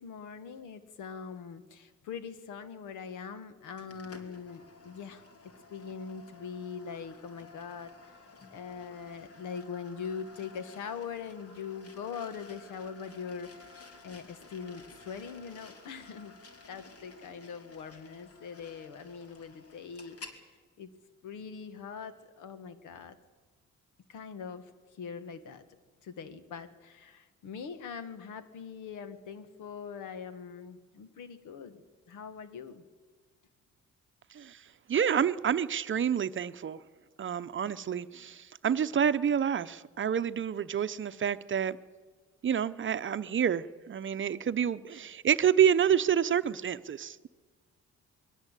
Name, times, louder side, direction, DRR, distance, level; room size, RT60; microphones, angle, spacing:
voice 1, 0.0-5.2 5.7-8.2 8.5-13.7 14.0-16.3 16.7-20.5 20.8-20.9 21.2-23.1 24.1-25.6 26.0-31.8 32.1-32.8, left 6 dB, 85° left, 12 dB, 1.7 m, -42 dB
sound 1, 3.8-20.4, left 3 dB, 50° left, 2.8 m, -53 dB
voice 2, 34.3-34.6 34.9-36.8 37.2-41.8 42.4-47.3, right 8 dB, 40° right, 13 dB, 0.8 m, -28 dB
22.0 x 17.5 x 8.3 m, 1.4 s
cardioid pair, 90°, 30 cm